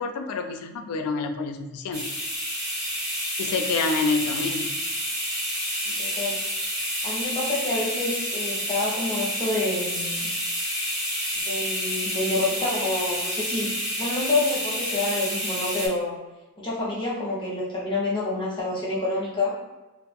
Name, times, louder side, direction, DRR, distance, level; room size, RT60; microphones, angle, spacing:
voice 1, 0.0-2.1 3.4-4.7, left 4 dB, 85° left, 6 dB, 0.3 m, -27 dB
sound 1, 1.9-15.9, equal, 15° right, 0.6 m, -29 dB
voice 2, 5.9-6.4 7.0-10.3 11.3-13.7 14.0-16.1 16.6-19.5, left 2 dB, 20° left, -6 dB, 0.7 m, -28 dB
2.5 x 2.3 x 2.5 m, 1.1 s
head